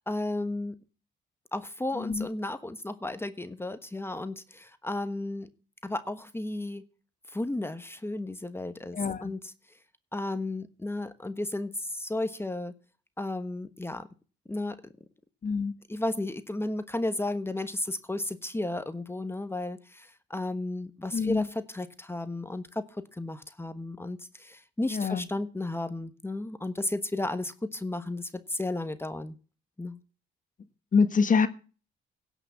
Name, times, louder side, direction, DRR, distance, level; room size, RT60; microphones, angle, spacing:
voice 1, 0.1-0.7 1.5-5.5 5.8-6.8 7.3-9.5 10.1-12.7 13.2-14.1 14.5-14.8 15.9-29.3 29.8-30.0, left 2 dB, 10° left, 10 dB, 1.2 m, -33 dB
voice 2, 8.9-9.3 15.4-15.7 21.1-21.4 24.9-25.2 30.9-31.5, left 5 dB, 40° left, 10 dB, 1.5 m, -25 dB
16.5 x 6.0 x 7.2 m, 0.37 s
cardioid pair, 90°, 20 cm